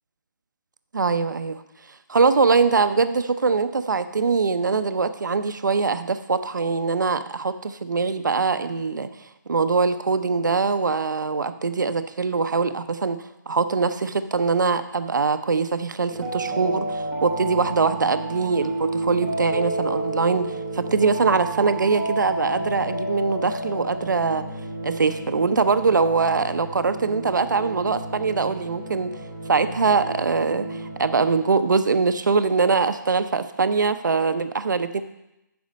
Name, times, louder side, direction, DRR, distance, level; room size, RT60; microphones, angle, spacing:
voice 1, 0.9-1.6 2.1-9.1 9.5-24.4 24.8-29.1 29.5-35.0, right 4 dB, 65° right, 11 dB, 0.7 m, -22 dB
sound 1, 16.1-31.8, right 2 dB, ahead, 0.6 m, -31 dB
9.4 x 6.4 x 5.2 m, 0.90 s
hypercardioid pair, 180°, 11 cm